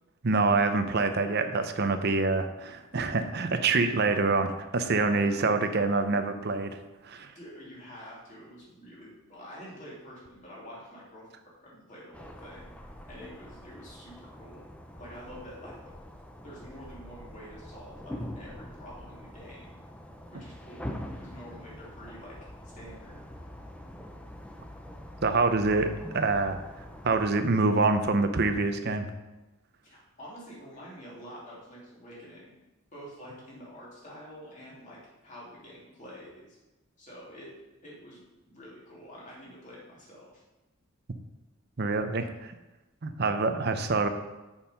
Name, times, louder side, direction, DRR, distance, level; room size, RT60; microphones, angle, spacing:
voice 1, 0.2-6.8 7.0-7.3 25.2-26.6 27.0-29.1 41.8-42.5 43.0-44.1, right 3 dB, 50° right, 8 dB, 0.7 m, -26 dB
voice 2, 7.1-11.3 11.6-12.7 13.0-14.6 15.0-15.7 16.4-19.8 20.3-22.4 22.6-23.2 29.8-32.6 32.9-36.6 37.0-37.5 37.8-40.4, equal, 35° left, -6 dB, 2.8 m, -47 dB
sound 1, 12.1-27.3, left 1 dB, 5° left, 0.5 m, -44 dB
6.9 x 5.5 x 5.6 m, 1.1 s
head